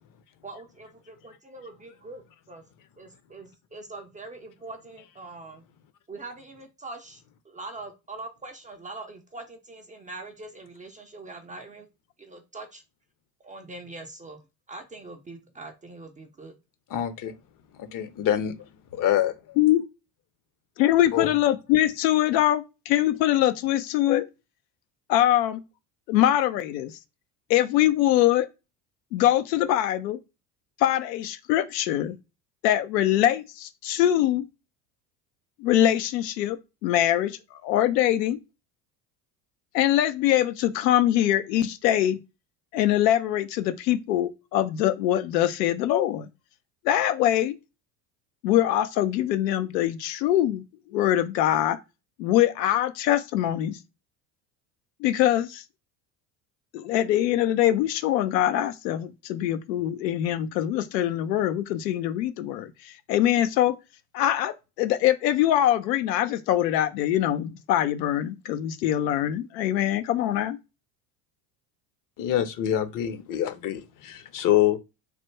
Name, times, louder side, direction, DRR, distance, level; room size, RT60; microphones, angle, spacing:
voice 1, 0.4-2.6 3.0-5.6 6.1-11.9 12.2-12.8 13.4-14.4 14.7-16.5, right 2 dB, 15° right, 0.4 m, -42 dB
voice 2, 16.9-17.4 17.7-18.5 19.0-19.3 21.1-21.3 72.2-74.8, left 11 dB, 40° left, 0.7 m, -25 dB
voice 3, 20.8-24.3 25.1-25.6 26.1-27.0 27.5-28.5 29.1-30.2 30.8-32.1 32.6-34.5 35.6-38.4 39.7-42.2 42.7-46.3 46.8-47.6 48.4-51.8 52.2-53.8 55.0-55.6 56.7-63.7 64.1-70.6, left 12 dB, 80° left, 0.6 m, -23 dB
3.2 x 2.1 x 3.2 m
hypercardioid pair, 75°, 50 cm